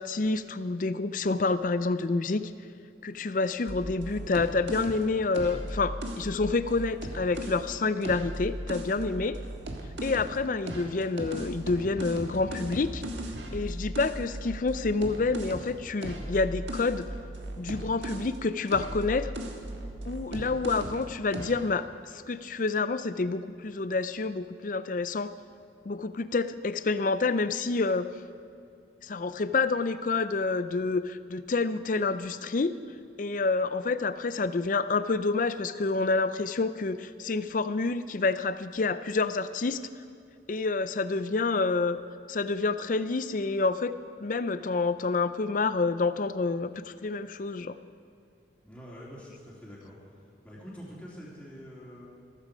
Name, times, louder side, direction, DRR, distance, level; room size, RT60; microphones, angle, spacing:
voice 1, 0.0-2.5 3.0-9.4 10.0-13.0 13.5-17.1 17.6-19.3 20.1-25.3 25.8-28.1 29.0-32.7 33.2-39.8 40.5-42.0 42.3-43.9 44.2-47.8, left 3 dB, 45° left, 13 dB, 0.5 m, -28 dB
sound 1, 3.7-7.6 8.0-10.4 10.7-18.4 18.7-21.1 21.3-21.7, right 1 dB, 75° right, 1.6 m, -37 dB
voice 2, 48.6-50.2 50.4-52.1, equal, 5° left, -7 dB, 3.3 m, -45 dB
15.0 x 14.5 x 5.1 m, 2.4 s
head